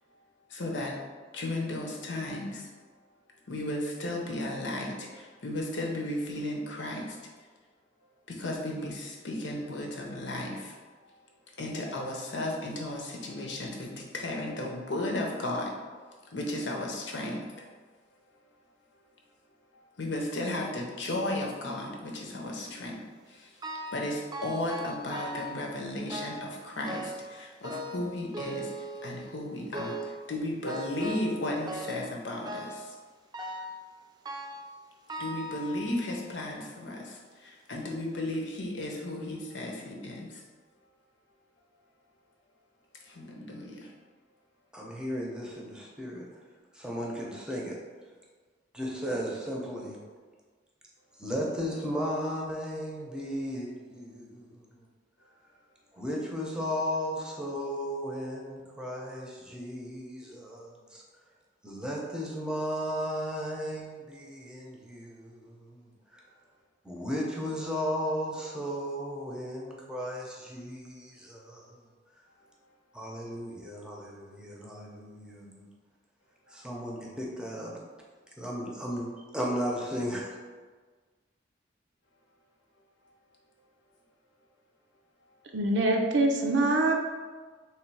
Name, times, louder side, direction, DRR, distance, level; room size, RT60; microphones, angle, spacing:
voice 1, 0.5-1.0 1.3-2.7 3.5-7.2 8.3-10.8 11.6-15.8 16.3-17.7 20.0-32.9 35.2-40.4 43.0-43.9, left 1 dB, 75° left, 0 dB, 0.9 m, -34 dB
sound 1, 23.6-24.1 24.3-25.6 26.1-26.5 26.9-27.3 27.6-29.3 29.7-30.2 30.7-31.4 31.7-32.1 32.5-32.9 33.3-33.8 34.3-34.7 35.1-36.2 36.8-36.9 37.7-37.8 38.3-38.4, right 1 dB, 25° right, 0.4 m, -39 dB
voice 2, 44.7-46.3 46.7-47.8 48.7-50.0 51.2-54.8 55.9-61.0 61.6-66.2 66.8-71.8 72.9-75.7 76.5-77.8 78.4-80.3, equal, 5° right, -3 dB, 0.7 m, -35 dB
voice 3, 85.5-86.9, right 2 dB, 75° right, 2 dB, 0.6 m, -24 dB
3.3 x 3.2 x 4.7 m, 1.4 s
head